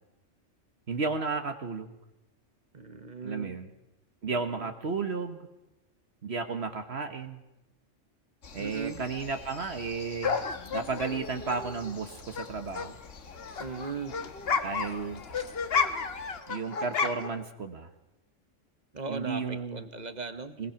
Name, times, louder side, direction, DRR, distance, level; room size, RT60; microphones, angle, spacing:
voice 1, 0.9-2.0 3.2-3.7 4.2-5.5 6.2-7.4 8.5-10.4 10.7-13.0 14.6-15.2 16.5-17.9 19.1-19.8 20.6-20.7, right 4 dB, 55° right, 7 dB, 1.5 m, -33 dB
voice 2, 2.7-3.6 8.6-9.0 13.6-14.2 18.9-20.6, right 4 dB, 35° right, 10 dB, 1.3 m, -38 dB
sound 1, 8.4-16.4, left 4 dB, 70° left, 1.7 m, -49 dB
sound 2, 10.2-12.5 12.7-17.4, left 5 dB, 55° left, 1.3 m, -32 dB
21.5 x 21.0 x 5.9 m, 0.95 s
omnidirectional pair, 1.3 m